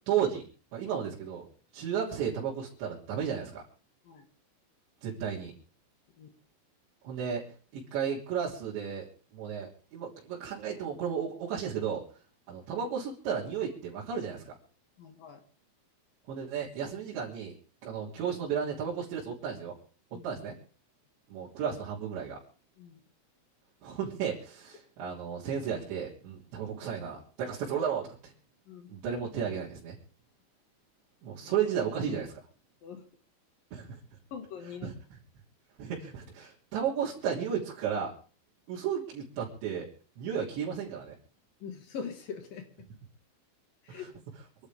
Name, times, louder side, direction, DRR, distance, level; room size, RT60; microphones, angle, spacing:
voice 1, 0.1-0.5 0.7-1.5 1.7-3.6 5.0-5.5 7.0-7.4 7.7-9.1 9.3-12.1 12.5-14.5 16.3-17.5 17.8-19.8 20.2-20.5 21.3-22.4 23.8-28.3 28.9-30.0 31.2-32.4 33.7-34.0 34.8-34.9 35.8-38.1 38.7-39.9 40.2-41.1 43.9-44.1, right 7 dB, 65° right, -7 dB, 5.5 m, -33 dB
voice 2, 15.0-15.4 20.1-20.3 22.8-23.0 28.7-28.9 32.8-33.0 34.3-34.9 41.6-42.7 43.8-44.1, left 6 dB, 55° left, 6 dB, 3.1 m, -42 dB
27.0 x 12.0 x 3.6 m, 0.40 s
omnidirectional pair, 5.6 m